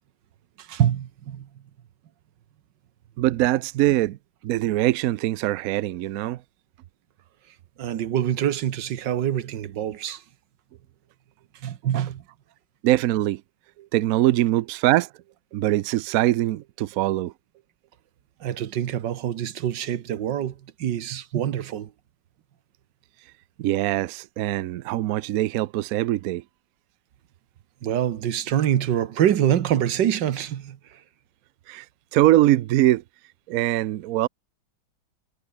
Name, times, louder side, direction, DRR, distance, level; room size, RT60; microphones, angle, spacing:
voice 1, 0.6-1.5 7.8-10.2 11.6-12.2 18.4-21.9 27.8-31.0, right 10 dB, 65° right, 1.7 m, -25 dB
voice 2, 3.2-4.2 4.4-6.4 12.8-13.4 13.8-15.1 15.5-17.3 23.6-26.4 31.7-31.9 32.1-33.0 33.5-34.3, right 15 dB, 90° right, 0.7 m, -22 dB
omnidirectional pair, 2.2 m